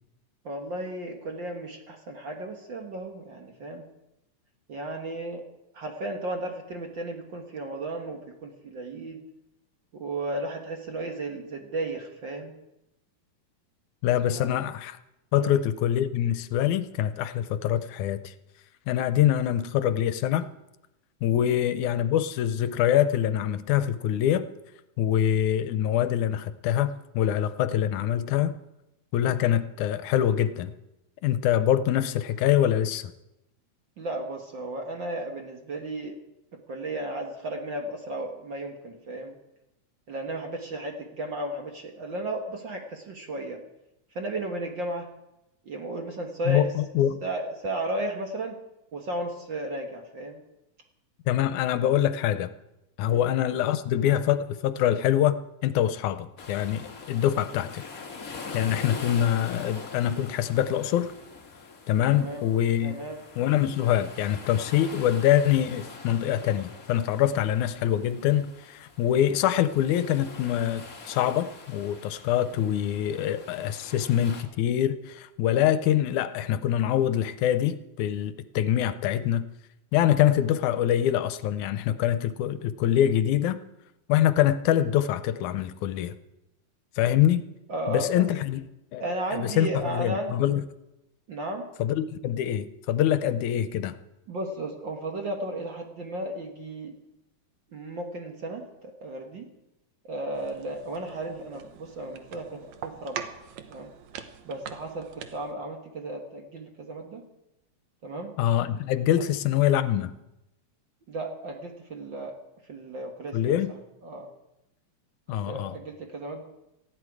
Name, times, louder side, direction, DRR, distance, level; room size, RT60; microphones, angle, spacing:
voice 1, 0.4-3.8 4.7-5.4 5.7-9.2 9.9-12.5 14.3-14.5 15.3-15.6 21.4-21.6 34.0-36.2 36.5-39.4 40.1-43.6 44.1-45.1 45.6-46.7 47.2-48.5 48.9-50.4 53.1-53.3 62.1-62.4 62.8-63.2 87.7-88.2 89.0-90.4 91.3-91.7 94.3-97.0 97.7-98.7 99.0-99.5 100.0-103.3 103.7-103.9 104.4-107.2 108.0-108.3 111.1-112.3 112.7-114.3 115.5-116.4, right 1 dB, 50° right, 3 dB, 1.7 m, -34 dB
voice 2, 14.0-15.0 15.3-18.3 18.9-20.5 21.2-24.5 25.0-28.6 29.1-30.7 31.2-33.1 46.5-47.2 51.3-52.5 53.0-57.8 58.2-61.1 61.9-63.0 63.4-79.5 79.9-83.6 84.1-86.1 87.0-87.5 87.9-88.7 88.9-89.0 89.3-90.6 91.8-94.0 108.4-110.1 113.3-113.7 115.3-115.7, left 11 dB, 80° left, 12 dB, 2.1 m, -24 dB
sound 1, 56.4-74.4, left 4 dB, 35° left, 1.7 m, -44 dB
sound 2, 100.3-105.5, right 8 dB, 70° right, 2.1 m, -43 dB
18.5 x 14.5 x 4.8 m, 0.91 s
omnidirectional pair, 3.5 m